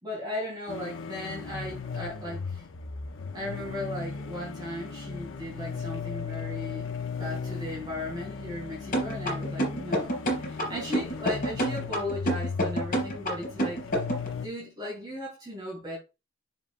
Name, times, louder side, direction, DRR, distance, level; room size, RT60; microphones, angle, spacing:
voice 1, 0.0-2.7 3.3-6.9 7.1-13.8 14.4-16.0, left 1 dB, 20° right, 3.5 m, -37 dB
sound 1, 0.7-14.5, left 5 dB, 75° left, 0.8 m, -37 dB
sound 2, 8.9-14.3, right 1 dB, 45° left, 3.8 m, -27 dB
7.3 x 7.1 x 2.5 m
head